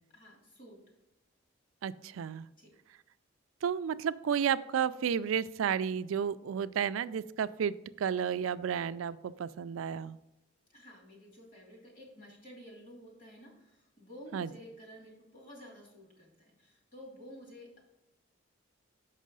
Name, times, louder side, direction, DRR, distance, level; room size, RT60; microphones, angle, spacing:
voice 1, 0.1-0.8 2.6-2.7 10.7-17.8, equal, 45° left, -1 dB, 2.6 m, -52 dB
voice 2, 1.8-2.5 3.6-10.2 14.3-14.5, right 8 dB, 90° right, 15 dB, 0.4 m, -32 dB
6.4 x 5.5 x 5.3 m, 0.93 s
head